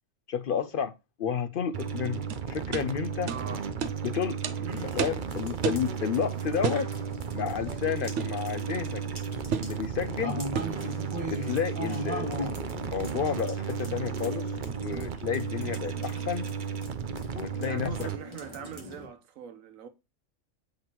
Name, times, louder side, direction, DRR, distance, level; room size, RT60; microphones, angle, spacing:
voice 1, 0.3-0.9 1.2-3.6 4.0-6.9 7.3-9.0 9.6-10.5 11.3-16.5 17.3-18.1, left 7 dB, 65° left, 0.5 m, -31 dB
sound 1, 1.7-18.2, right 7 dB, 50° right, 0.6 m, -34 dB
sound 2, 2.3-2.4 2.7-2.9 3.3-3.4 3.8-4.0 4.4-4.6 5.0-5.2 5.6-5.9 6.6-6.9 8.2-8.4 9.5-9.8 10.5-10.8, right 7 dB, 65° right, 1.0 m, -30 dB
voice 2, 3.3-3.6 4.6-5.0 17.6-19.9, right 8 dB, 85° right, 1.3 m, -42 dB
sound 3, 4.7-19.1, right 1 dB, 20° right, 2.1 m, -41 dB
7.8 x 4.9 x 2.9 m
omnidirectional pair, 1.4 m